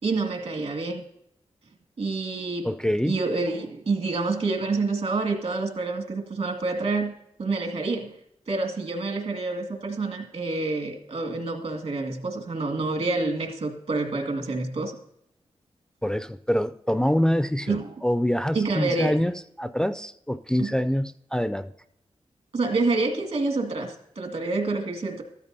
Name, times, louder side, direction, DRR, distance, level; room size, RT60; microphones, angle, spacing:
voice 1, 0.0-1.0 2.0-2.7 3.0-7.1 7.4-8.1 8.5-15.0 17.7-17.9 18.5-19.2 20.6-20.7 22.5-25.2, right 3 dB, 70° right, 4 dB, 1.9 m, -27 dB
voice 2, 2.6-3.2 16.0-21.7, equal, 5° left, 11 dB, 0.3 m, -25 dB
14.0 x 13.5 x 2.7 m, 0.78 s
wide cardioid pair, 120°, 11 cm